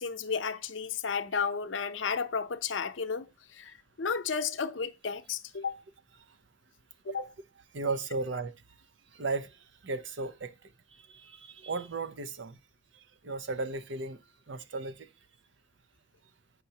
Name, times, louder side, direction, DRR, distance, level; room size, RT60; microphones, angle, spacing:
voice 1, 0.0-3.3 3.6-5.8 7.1-7.3, left 5 dB, 80° left, 0.7 m, -33 dB
voice 2, 7.7-8.5 9.1-9.6 9.8-10.5 11.1-12.6 13.2-14.2 14.5-15.1, right 3 dB, 70° right, 0.6 m, -35 dB
7.9 x 5.6 x 2.8 m
head